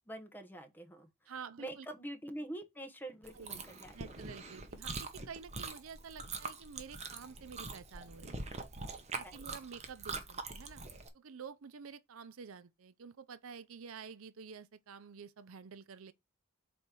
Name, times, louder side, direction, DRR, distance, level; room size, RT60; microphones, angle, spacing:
voice 1, 0.1-4.1 9.2-9.4, right 1 dB, 10° left, 1.2 m, -46 dB
voice 2, 1.3-1.9 3.3-3.6 3.9-8.5 9.1-10.8 11.1-16.1, right 6 dB, 75° right, 0.5 m, -49 dB
Chewing mastication, 3.2-11.1, right 3 dB, 30° right, 1.1 m, -44 dB
5.1 x 4.2 x 6.1 m
head